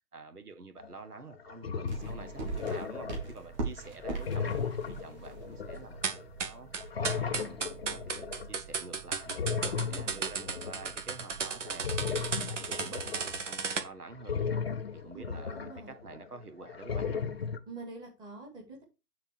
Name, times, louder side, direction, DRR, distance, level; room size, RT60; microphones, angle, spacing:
voice 1, 0.1-7.6 7.9-12.1 12.4-14.6 14.9-17.3, right 3 dB, 70° right, 1.8 m, -48 dB
sound 1, 0.8-0.9 1.3-3.3 3.8-6.5 6.7-8.5 9.2-11.0 11.7-16.4 16.6-17.6, left 6 dB, 40° left, 0.8 m, -36 dB
sound 2, 1.9-12.5, right 4 dB, 25° right, 2.7 m, -43 dB
sound 3, 6.0-13.8, right 5 dB, 50° right, 1.2 m, -34 dB
voice 2, 9.7-10.2 15.1-15.9 17.7-18.8, right 3 dB, 10° right, 2.2 m, -46 dB
9.9 x 4.1 x 4.7 m
figure-of-eight pair, 140°, 48 cm